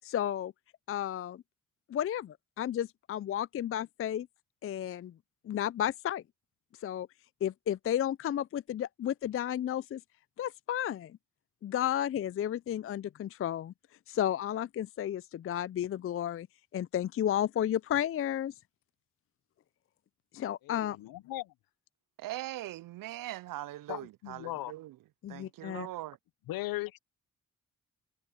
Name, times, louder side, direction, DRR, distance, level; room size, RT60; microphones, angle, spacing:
voice 1, 0.0-0.5 0.9-1.4 1.9-4.3 4.6-5.1 5.5-6.2 6.8-7.1 7.4-10.0 10.4-11.1 11.6-13.7 14.1-16.5 16.7-18.5 20.3-21.0 25.2-25.9, left 11 dB, 40° left, 0.4 m, -32 dB
voice 2, 20.6-21.5 23.9-24.7 26.5-27.0, left 17 dB, 85° left, 0.7 m, -38 dB
voice 3, 22.2-25.0 25.3-26.2, right 15 dB, 70° right, 0.5 m, -41 dB
supercardioid pair, 50°, 34 cm